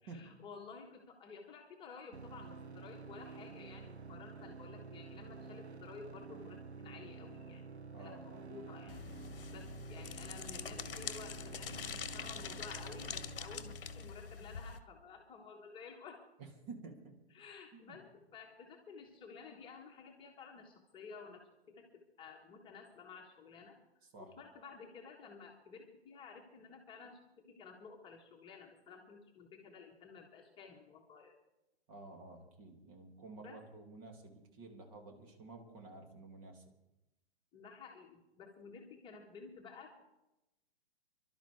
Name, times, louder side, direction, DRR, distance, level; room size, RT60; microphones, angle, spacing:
voice 1, 0.0-9.0 9.5-16.2 17.3-23.8 24.2-31.3 33.4-33.6 37.5-40.0, left 5 dB, 15° left, 0 dB, 1.5 m, -53 dB
sound 1, 2.1-14.1, right 5 dB, 85° right, 0.8 m, -50 dB
voice 2, 7.9-8.6 8.8-9.0 16.4-17.2 17.7-18.0 24.0-24.3 31.9-36.6, right 3 dB, 35° right, 3 dB, 2.6 m, -52 dB
sound 2, 8.9-14.8, left 6 dB, 55° left, 1.2 m, -45 dB
27.0 x 12.0 x 3.5 m, 0.93 s
figure-of-eight pair, 120°, 32 cm